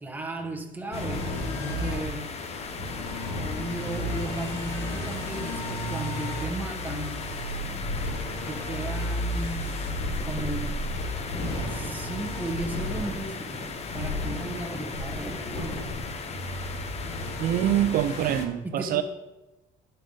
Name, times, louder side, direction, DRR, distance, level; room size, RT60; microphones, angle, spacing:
voice 1, 0.0-1.3 1.6-2.3 3.6-7.2 8.5-9.8 10.2-10.8 11.7-13.4 13.9-15.6 18.6-19.0, right 1 dB, 10° right, 1.1 m, -35 dB
sound 1, 0.9-18.4, left 1 dB, 90° left, 1.7 m, -33 dB
sound 2, 0.9-18.5, left 5 dB, 40° left, 0.7 m, -38 dB
sound 3, 9.5-16.0, left 1 dB, 20° left, 1.4 m, -43 dB
voice 2, 17.4-19.0, right 11 dB, 60° right, 0.4 m, -25 dB
10.5 x 5.3 x 3.9 m
cardioid pair, 110°, 17 cm